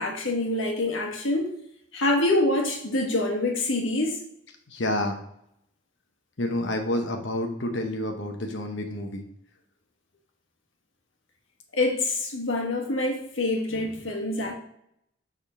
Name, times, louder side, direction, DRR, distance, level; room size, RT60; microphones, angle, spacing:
voice 1, 0.0-1.6 1.9-4.2 11.7-14.5, left 2 dB, 85° left, 2 dB, 1.3 m, -26 dB
voice 2, 4.7-5.2 6.4-9.2, left 1 dB, 70° left, 4 dB, 0.9 m, -29 dB
6.9 x 3.7 x 4.9 m, 0.73 s
head